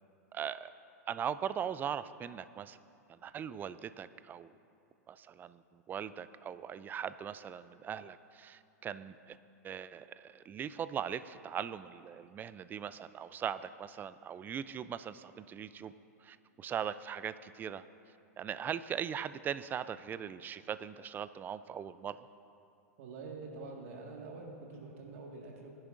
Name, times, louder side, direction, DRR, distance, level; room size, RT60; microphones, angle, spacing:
voice 1, 0.3-0.7 1.1-2.8 3.1-4.5 5.1-9.4 9.6-15.9 16.2-17.8 18.4-22.3, right 8 dB, 20° right, 15 dB, 0.4 m, -40 dB
voice 2, 23.0-25.7, right 3 dB, 60° right, 0 dB, 1.7 m, -46 dB
20.0 x 10.5 x 2.5 m, 2.7 s
hypercardioid pair, 100°, 9 cm